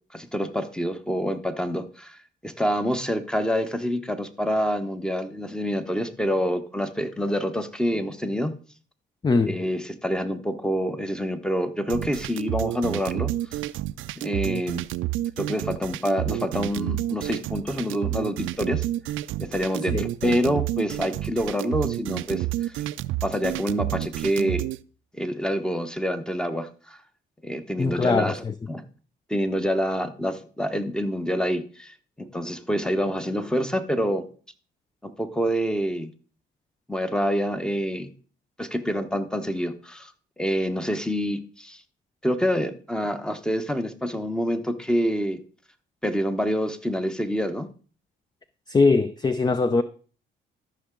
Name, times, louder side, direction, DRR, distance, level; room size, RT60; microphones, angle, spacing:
voice 1, 0.1-8.5 9.5-13.3 14.2-14.9 15.4-18.8 19.4-22.8 23.2-24.7 25.1-27.0 27.4-28.8 29.3-34.3 35.0-36.1 36.9-38.1 38.6-40.1 40.4-41.8 42.2-45.4 46.0-47.7, equal, 5° left, 0.9 m, -27 dB
voice 2, 9.2-9.6 19.9-20.1 27.8-28.5 48.7-49.8, left 4 dB, 20° left, 0.4 m, -21 dB
sound 1, 11.9-24.8, right 15 dB, 80° right, 0.4 m, -29 dB
13.0 x 5.7 x 3.8 m
cardioid pair, 90°, 20 cm